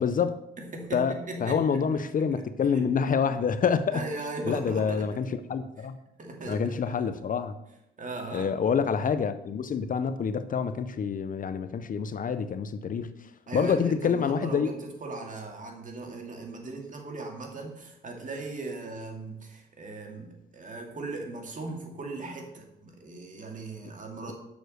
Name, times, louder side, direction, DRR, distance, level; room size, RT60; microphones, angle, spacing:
voice 1, 0.0-0.4 0.9-1.1 1.4-4.0 4.5-6.0 6.5-7.5 8.3-13.1 13.5-14.7, left 6 dB, 45° left, 0.6 m, -27 dB
voice 2, 0.6-1.8 2.2-2.9 3.9-5.1 5.8-5.9 6.2-7.0 8.0-8.5 13.5-24.3, right 2 dB, 40° right, 2.4 m, -38 dB
7.0 x 6.3 x 6.5 m
cardioid pair, 90°, 20 cm